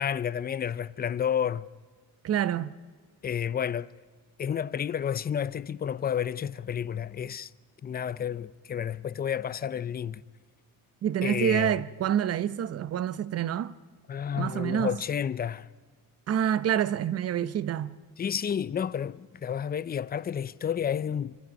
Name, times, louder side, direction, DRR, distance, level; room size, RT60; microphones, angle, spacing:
voice 1, 0.0-1.7 3.2-3.9 4.4-7.5 7.8-10.2 11.2-11.8 14.1-15.7 18.2-21.4, left 8 dB, 25° left, 0.5 m, -30 dB
voice 2, 2.2-2.7 11.0-13.7 14.4-15.0 16.3-17.9, right 10 dB, 45° right, 0.8 m, -27 dB
26.0 x 23.5 x 5.3 m
cardioid pair, 120°, 35 cm